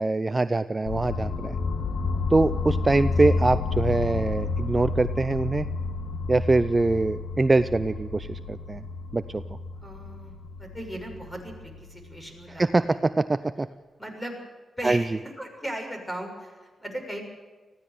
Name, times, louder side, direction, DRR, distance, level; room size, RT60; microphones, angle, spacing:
voice 1, 0.0-1.6 2.3-5.7 6.3-8.8 9.1-9.4 12.6-13.7 14.8-15.0, right 3 dB, 25° right, 12 dB, 0.6 m, -23 dB
sound 1, 0.9-12.8, left 3 dB, 70° left, 1.5 m, -30 dB
voice 2, 9.8-13.0 14.0-14.4 14.8-15.1 15.4-17.2, right 1 dB, 10° left, 3 dB, 6.5 m, -37 dB
20.0 x 15.5 x 9.5 m, 1.4 s
cardioid pair, 80°, 0 cm